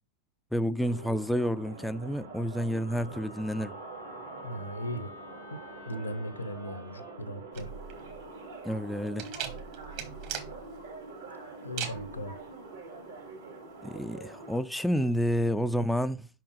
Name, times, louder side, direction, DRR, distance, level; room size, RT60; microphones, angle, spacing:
voice 1, 0.5-3.7 8.6-9.3 13.8-16.3, equal, ahead, 0.3 m, -29 dB
sound 1, 0.8-14.6, right 3 dB, 70° right, 2.0 m, -45 dB
Wind instrument woodwind instrument, 2.8-7.2, left 2 dB, 90° right, 1.6 m, -50 dB
voice 2, 4.4-5.1 5.5-5.6 5.9-7.7 11.6-12.4, equal, 80° left, 0.8 m, -37 dB
sound 2, 7.5-15.1, right 8 dB, 45° right, 1.5 m, -41 dB
5.5 x 4.6 x 4.8 m
figure-of-eight pair, 90°, 0 cm